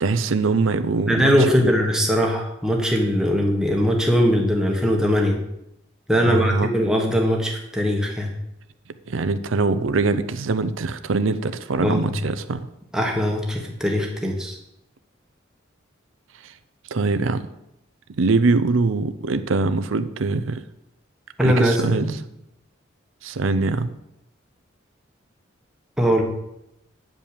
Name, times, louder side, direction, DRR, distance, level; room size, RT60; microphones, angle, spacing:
voice 1, 0.0-1.3 1.6-1.7 6.2-6.7 9.1-12.6 16.4-16.5 16.9-17.4 18.2-20.6 21.4-22.2 23.2-23.9, right 3 dB, 90° right, 12 dB, 0.6 m, -22 dB
voice 2, 1.1-5.4 6.1-8.3 11.8-12.1 12.9-14.6 21.4-22.1 26.0-26.2, equal, 5° right, 0 dB, 1.4 m, -21 dB
9.0 x 5.4 x 6.8 m, 0.83 s
head